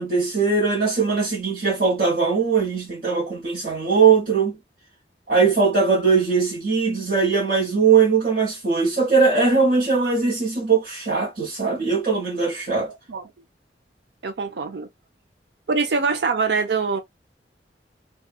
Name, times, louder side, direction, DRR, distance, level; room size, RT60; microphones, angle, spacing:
voice 1, 0.0-4.6 5.3-12.9, right 5 dB, 50° right, 1.1 m, -20 dB
voice 2, 14.2-14.9 15.7-17.0, right 4 dB, 75° right, 0.6 m, -23 dB
2.8 x 2.4 x 2.3 m
head